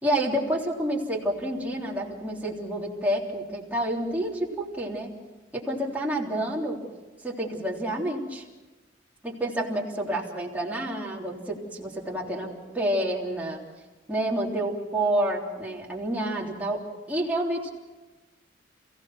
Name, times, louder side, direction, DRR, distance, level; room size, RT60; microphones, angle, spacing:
voice 1, 0.0-5.1 5.5-6.8 7.2-8.4 9.2-12.5 12.7-13.6 14.1-16.8 17.1-17.7, right 1 dB, 10° right, -3 dB, 3.4 m, -29 dB
29.5 x 16.5 x 6.3 m, 1.2 s
head